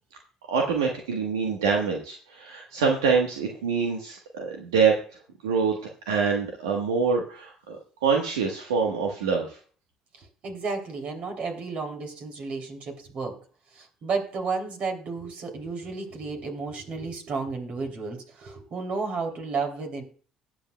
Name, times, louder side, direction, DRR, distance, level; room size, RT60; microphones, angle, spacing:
voice 1, 0.5-4.9 5.4-5.8 6.1-9.6, right 5 dB, 85° right, 1 dB, 1.2 m, -25 dB
voice 2, 10.2-13.4 13.7-20.0, right 4 dB, 55° right, 4 dB, 2.8 m, -32 dB
19.0 x 7.5 x 2.2 m, 0.42 s
hypercardioid pair, 60°, 3 cm